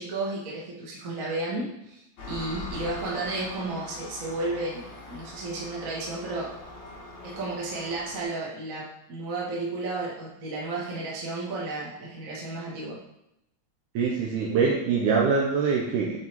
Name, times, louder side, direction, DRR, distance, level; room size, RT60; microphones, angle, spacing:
voice 1, 0.0-4.8 5.1-6.5 7.2-13.0, right 2 dB, 45° right, -5 dB, 1.1 m, -33 dB
Engine, 2.2-8.2, left 2 dB, 65° left, 1.0 m, -41 dB
voice 2, 14.0-16.2, right 5 dB, 75° right, -3 dB, 2.2 m, -24 dB
7.5 x 4.2 x 4.5 m, 0.84 s
omnidirectional pair, 3.7 m